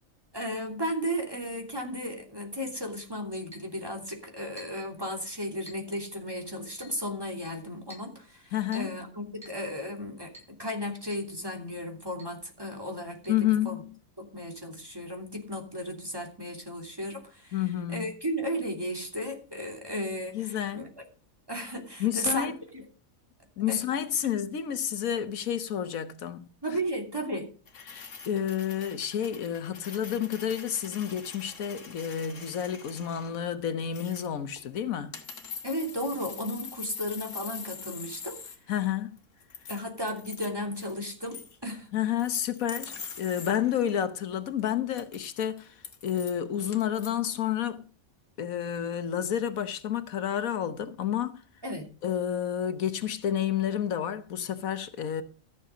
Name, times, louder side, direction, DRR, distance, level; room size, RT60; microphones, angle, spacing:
voice 1, 0.3-13.8 14.2-17.6 17.9-20.9 21.5-22.8 23.7-23.8 26.6-27.5 35.6-38.4 39.7-41.9 51.6-51.9, equal, 15° right, 2.9 m, -34 dB
Chink clink, 3.5-3.7 4.6-4.9 5.7-5.9 6.8-7.0 7.9-8.1 8.7-9.0 9.4-9.6 10.3-10.5 11.1-11.3 11.6-11.7 12.2-12.3 13.2-13.3, right 1 dB, 5° left, 7.6 m, -49 dB
voice 2, 8.5-8.9 13.3-13.9 17.5-18.1 20.3-20.9 22.0-22.6 23.6-26.5 27.9-35.1 38.7-39.2 41.9-45.7 46.0-47.8 48.4-51.4 52.0-55.2, left 9 dB, 85° left, 1.4 m, -30 dB
sound 1, 27.7-33.3 33.9-34.6 35.1-38.6 38.9-40.5 40.7-41.0 41.3-41.6 42.2-44.0 44.6-44.7 44.9-47.1, left 6 dB, 65° left, 1.8 m, -44 dB
14.0 x 7.2 x 5.0 m
omnidirectional pair, 1.4 m